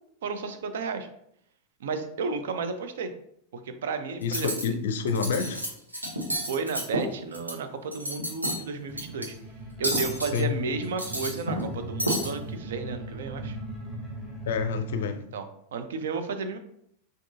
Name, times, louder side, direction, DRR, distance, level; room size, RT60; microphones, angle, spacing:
voice 1, 0.2-1.1 1.8-3.1 3.6-4.5 6.5-9.3 9.8-13.6 15.3-15.4 15.7-16.6, right 4 dB, 60° right, 8 dB, 0.5 m, -32 dB
voice 2, 4.2-5.6 10.3-10.5 14.4-15.2, left 6 dB, 60° left, 8 dB, 0.4 m, -28 dB
Cutlery silverware, 4.2-4.6 5.1-5.7 5.9-7.5 7.9-8.6 9.0-9.2 9.8-10.4 10.8-11.7 12.0-12.3, equal, 85° right, 0.9 m, -30 dB
sound 1, 8.9-15.1, right 1 dB, ahead, 1.0 m, -39 dB
5.8 x 2.6 x 2.6 m, 0.73 s
figure-of-eight pair, 90°, 0 cm